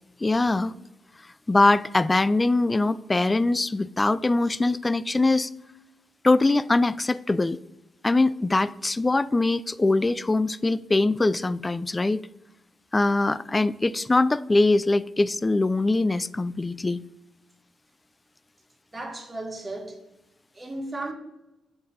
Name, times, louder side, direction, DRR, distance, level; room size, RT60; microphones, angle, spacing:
voice 1, 0.2-0.7 1.5-5.5 6.2-7.6 8.0-12.2 12.9-17.0, left 2 dB, 25° left, 0.3 m, -22 dB
voice 2, 18.9-20.0 20.5-21.1, right 2 dB, 30° right, 1.6 m, -35 dB
6.6 x 4.0 x 5.6 m
hypercardioid pair, 45°, 0 cm